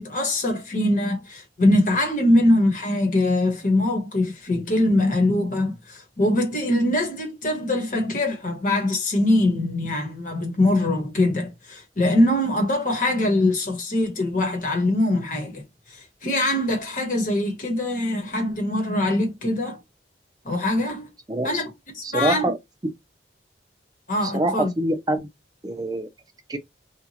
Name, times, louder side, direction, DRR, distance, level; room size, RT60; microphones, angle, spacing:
voice 1, 0.0-19.8 20.4-21.1 21.4-22.4 24.1-24.7, left 1 dB, 45° left, 1.2 m, -23 dB
voice 2, 22.0-22.6 22.8-22.9 24.2-25.3 25.6-26.1 26.5-26.6, right 1 dB, 20° right, 0.5 m, -24 dB
2.9 x 2.4 x 2.8 m
head